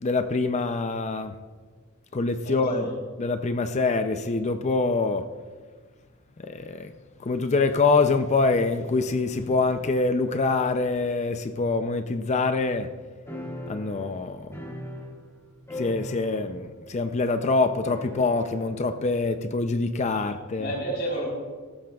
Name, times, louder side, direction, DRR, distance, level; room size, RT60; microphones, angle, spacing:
voice 1, 0.0-1.3 2.1-2.8 3.2-5.2 6.4-6.9 7.2-12.9 13.7-14.5 15.8-20.7, left 3 dB, 35° left, 8 dB, 0.5 m, -25 dB
voice 2, 2.4-2.9 20.1-20.3 20.6-21.2, right 1 dB, 50° left, -5 dB, 4.0 m, -31 dB
sound 1, 13.3-15.4 15.7-16.7 16.9-17.0 17.9-18.7, left 1 dB, 15° left, 3.4 m, -39 dB
16.5 x 13.5 x 2.4 m, 1.5 s
head